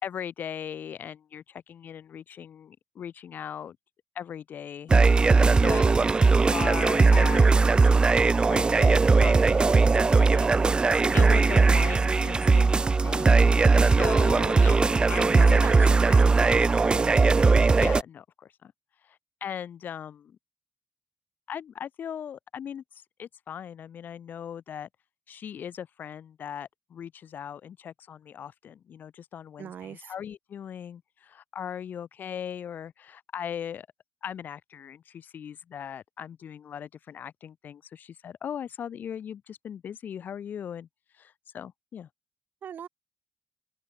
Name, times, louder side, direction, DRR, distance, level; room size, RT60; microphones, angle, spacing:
voice 1, 0.0-3.8 4.1-4.9 5.6-5.8 6.5-7.6 8.4-10.5 11.1-12.7 13.0-13.5 13.8-16.5 17.8-18.7 19.0-20.4 21.5-22.8 23.2-24.9 25.3-33.9 34.2-40.9 41.2-42.1, left 8 dB, 70° left, 4.2 m, -38 dB
sound 1, 4.9-18.0, right 4 dB, 30° right, 0.5 m, -19 dB
voice 2, 5.6-6.0 14.3-14.7 15.4-17.3 29.6-30.1 42.6-42.9, right 9 dB, 75° right, 3.6 m, -39 dB
cardioid pair, 110°, 3 cm